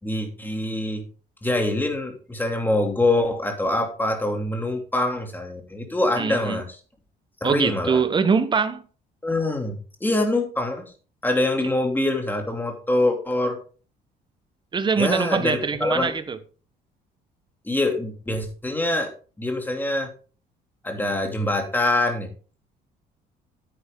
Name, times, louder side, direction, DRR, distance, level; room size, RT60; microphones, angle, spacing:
voice 1, 0.0-1.0 1.4-6.6 7.4-8.0 9.2-10.8 11.2-13.6 15.0-16.1 17.6-19.1 19.4-20.1 20.8-22.3, left 2 dB, 10° left, 2.8 m, -24 dB
voice 2, 6.2-6.6 7.4-8.8 14.7-16.4, right 5 dB, 30° right, 1.2 m, -23 dB
9.7 x 9.5 x 3.8 m
cardioid pair, 110°, 17 cm